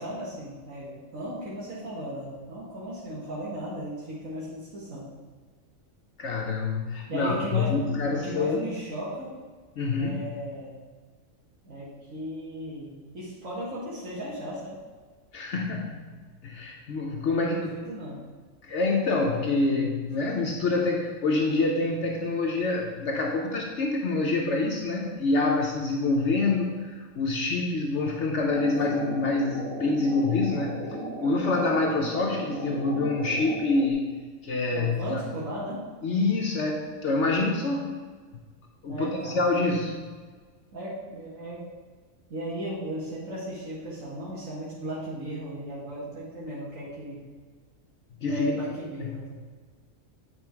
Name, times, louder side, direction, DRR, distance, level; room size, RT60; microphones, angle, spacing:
voice 1, 0.0-5.1 7.1-7.9 8.1-9.3 10.0-10.7 11.6-14.8 17.2-18.2 28.7-29.2 34.7-35.8 38.9-39.4 40.7-41.7 42.3-47.2 48.3-49.3, right 1 dB, 85° right, -8 dB, 2.0 m, -36 dB
voice 2, 6.2-8.7 9.8-10.2 15.3-16.1 16.4-17.9 18.6-34.1 34.4-35.2 36.0-37.9 38.8-40.0 48.2-48.5 49.0-49.1, left 3 dB, 65° left, 0 dB, 1.1 m, -26 dB
sound 1, 28.5-33.9, right 2 dB, 70° right, 1.7 m, -37 dB
8.8 x 4.5 x 4.5 m, 1.5 s
omnidirectional pair, 1.4 m